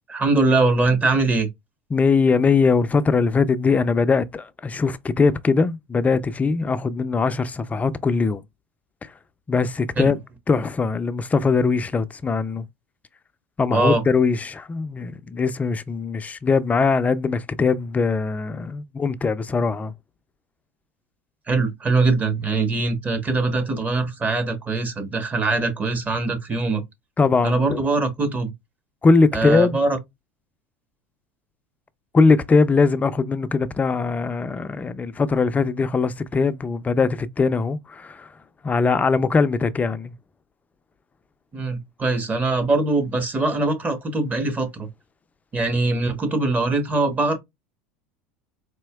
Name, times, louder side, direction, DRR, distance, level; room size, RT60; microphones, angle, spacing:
voice 1, 0.1-1.5 10.0-10.1 13.7-14.0 21.5-26.8 27.4-28.5 29.3-30.0 41.5-44.9 45.5-47.4, right 3 dB, 20° right, 1.2 m, -22 dB
voice 2, 1.9-8.4 9.0-9.1 9.5-10.2 10.5-12.7 13.6-19.9 27.2-27.8 29.0-29.8 32.1-38.3 38.6-40.1, left 4 dB, 20° left, 0.5 m, -21 dB
4.3 x 2.8 x 2.3 m
hypercardioid pair, 90°, 7 cm